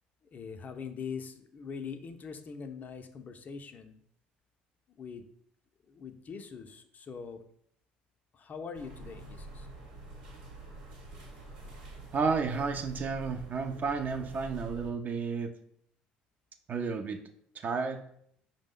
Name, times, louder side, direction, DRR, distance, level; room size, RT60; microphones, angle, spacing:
voice 1, 0.3-4.0 5.0-5.3 5.9-7.4 8.3-9.7, left 6 dB, 40° left, 8 dB, 0.4 m, -42 dB
sound 1, 8.7-14.9, right 2 dB, 85° right, 0.9 m, -47 dB
voice 2, 12.1-15.5 16.7-17.2 17.6-18.0, right 5 dB, 40° right, 7 dB, 0.4 m, -32 dB
4.9 x 2.0 x 3.6 m, 0.67 s
hypercardioid pair, 60°, 4 cm